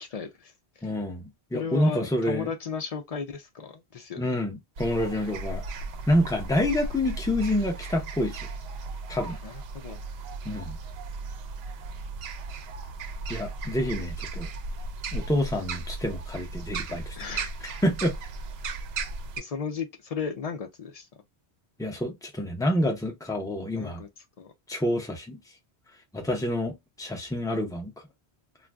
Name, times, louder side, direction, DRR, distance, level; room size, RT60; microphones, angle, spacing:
voice 1, 0.0-0.9 1.5-4.2 9.2-10.0 17.2-17.5 19.4-21.1 23.8-24.5, left 6 dB, 50° left, 0.4 m, -35 dB
voice 2, 0.8-2.5 4.2-5.6 6.1-8.4 9.1-9.4 10.4-10.8 13.3-14.5 15.1-17.2 17.8-18.1 21.8-24.0 24.7-25.4 26.1-27.9, left 1 dB, 5° left, 0.6 m, -27 dB
sound 1, 4.8-19.4, right 3 dB, 70° right, 0.8 m, -36 dB
2.5 x 2.2 x 3.3 m
omnidirectional pair, 1.1 m